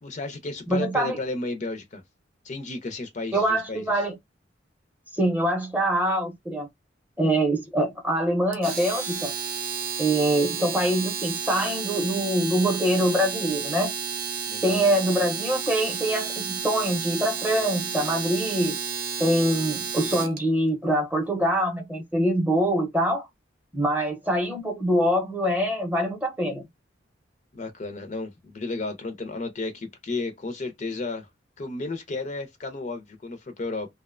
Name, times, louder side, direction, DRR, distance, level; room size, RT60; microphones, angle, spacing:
voice 1, 0.0-2.0 2.4-4.0 14.5-14.8 27.5-31.3 31.6-33.9, left 3 dB, 40° left, 0.5 m, -33 dB
voice 2, 0.7-1.2 3.3-4.2 5.2-6.7 7.2-9.3 10.0-13.9 14.6-18.8 19.2-23.3 23.7-26.6, right 1 dB, 10° right, 0.6 m, -24 dB
Domestic sounds home sounds, 8.5-20.4, right 6 dB, 50° right, 0.6 m, -31 dB
2.6 x 2.1 x 2.4 m
head